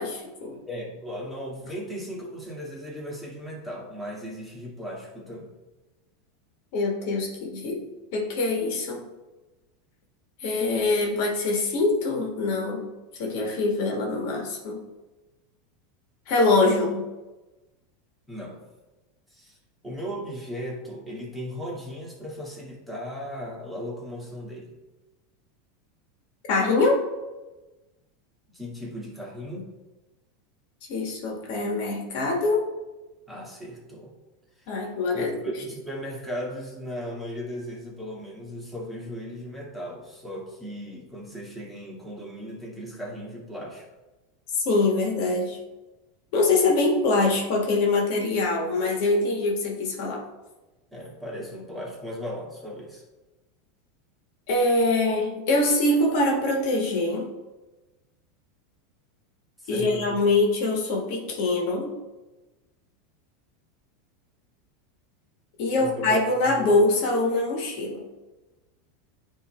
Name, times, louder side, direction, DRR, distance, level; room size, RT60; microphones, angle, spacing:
voice 1, 0.0-0.6 6.7-7.8 8.1-9.0 10.4-12.9 13.2-14.8 16.3-17.1 26.5-27.0 30.9-32.6 34.7-35.4 44.6-45.6 46.3-50.2 54.5-57.3 59.7-61.9 65.6-68.0, left 2 dB, 60° left, 0 dB, 1.8 m, -24 dB
voice 2, 0.7-5.5 18.3-18.6 19.3-19.6 19.8-24.7 28.5-29.7 33.3-34.1 34.6-34.8 35.1-43.9 50.9-53.0 59.6-60.2 65.8-66.2 66.5-66.7, equal, ahead, -5 dB, 2.4 m, -37 dB
9.4 x 3.3 x 4.5 m, 1.1 s
hypercardioid pair, 100°, 0 cm